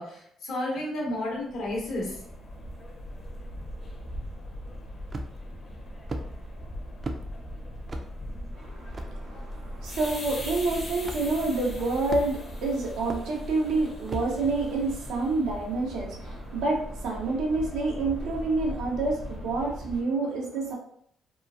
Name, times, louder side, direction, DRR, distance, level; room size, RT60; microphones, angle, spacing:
voice 1, 0.0-2.2, left 1 dB, 80° left, -2 dB, 1.0 m, -31 dB
sound 1, 1.3-20.0, left 1 dB, 40° left, 0.6 m, -39 dB
sound 2, 5.1-5.5 6.1-6.3 7.0-7.2 7.9-8.1 8.9-9.1 10.0-10.1 11.0-11.2 12.1-12.5 13.1-13.3 14.1-14.3, right 1 dB, 35° right, 0.3 m, -34 dB
voice 2, 8.5-20.7, right 3 dB, 90° right, -2 dB, 0.7 m, -28 dB
2.9 x 2.3 x 2.4 m, 0.67 s
cardioid pair, 90°, 0 cm